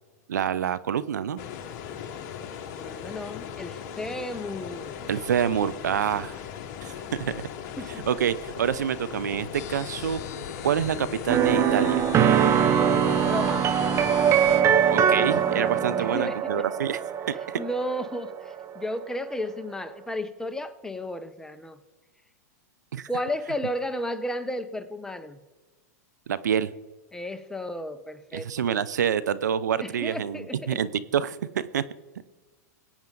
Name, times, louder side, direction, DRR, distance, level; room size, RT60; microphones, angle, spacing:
voice 1, 0.3-1.5 5.1-6.4 6.8-7.3 8.0-10.2 10.6-12.1 14.9-17.0 17.3-17.6 22.9-23.1 26.3-26.7 28.3-31.8, right 8 dB, 80° right, 16 dB, 0.6 m, -27 dB
sound 1, 1.4-16.4, left 8 dB, 50° left, 1.3 m, -39 dB
voice 2, 2.8-5.1 7.8-8.1 13.3-13.7 16.0-16.5 17.6-21.8 23.1-25.4 27.1-28.8 29.8-30.8, left 1 dB, 5° left, 9 dB, 0.9 m, -33 dB
sound 2, 9.5-14.6, left 9 dB, 65° left, 0.9 m, -39 dB
sound 3, 11.3-18.9, right 8 dB, 30° right, 0.7 m, -22 dB
21.0 x 8.7 x 3.9 m, 1.3 s
hypercardioid pair, 115°, 9 cm